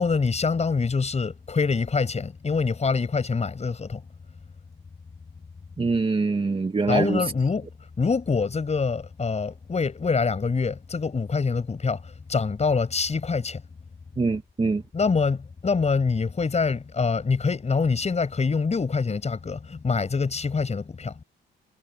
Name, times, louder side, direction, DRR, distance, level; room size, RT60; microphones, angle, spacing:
voice 1, 0.0-4.0 6.9-7.7 8.0-13.6 14.9-21.2, left 4 dB, 35° left, 7.9 m, -25 dB
voice 2, 5.8-7.2 14.2-14.8, right 4 dB, 25° right, 2.0 m, -24 dB
cardioid pair, 90°, 20 cm